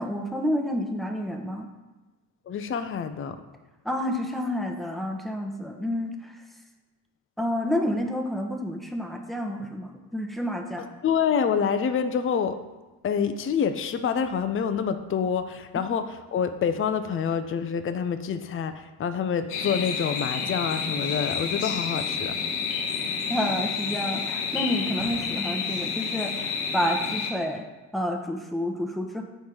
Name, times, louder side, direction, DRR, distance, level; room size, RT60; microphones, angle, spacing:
voice 1, 0.0-1.7 3.8-6.3 7.4-10.9 23.3-27.7 27.9-29.2, left 1 dB, ahead, 2 dB, 1.0 m, -29 dB
voice 2, 2.5-3.4 11.0-12.6 13.0-22.3, left 7 dB, 25° left, 9 dB, 0.5 m, -27 dB
sound 1, 19.5-27.3, left 5 dB, 80° left, 0.8 m, -29 dB
5.6 x 4.4 x 4.9 m, 1.1 s
hypercardioid pair, 40°, 48 cm